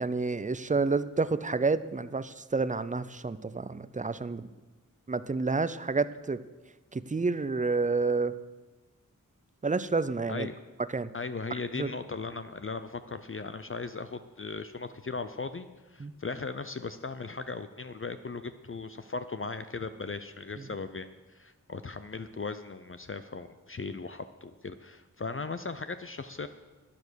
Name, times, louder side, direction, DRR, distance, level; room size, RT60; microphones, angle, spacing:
voice 1, 0.0-4.5 5.1-6.4 6.9-8.3 9.6-10.5 10.9-11.1 11.8-11.9 16.0-16.1, right 4 dB, 25° right, 15 dB, 0.5 m, -29 dB
voice 2, 11.1-26.5, left 4 dB, 40° left, 10 dB, 0.6 m, -38 dB
12.0 x 9.8 x 6.3 m, 1.2 s
wide cardioid pair, 60°, 33 cm